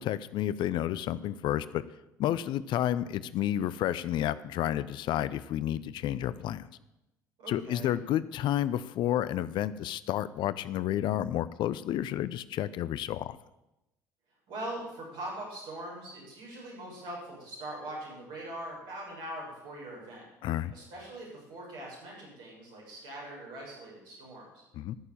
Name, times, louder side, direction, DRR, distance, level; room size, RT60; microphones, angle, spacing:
voice 1, 0.0-1.8 2.2-6.7 7.5-13.4 20.4-20.7 24.7-25.0, left 12 dB, 55° left, 16 dB, 0.6 m, -30 dB
voice 2, 7.4-7.9 14.5-20.3 20.7-24.6, right 1 dB, 65° right, -3 dB, 6.6 m, -42 dB
13.0 x 6.8 x 8.9 m, 0.93 s
figure-of-eight pair, 55°, 9 cm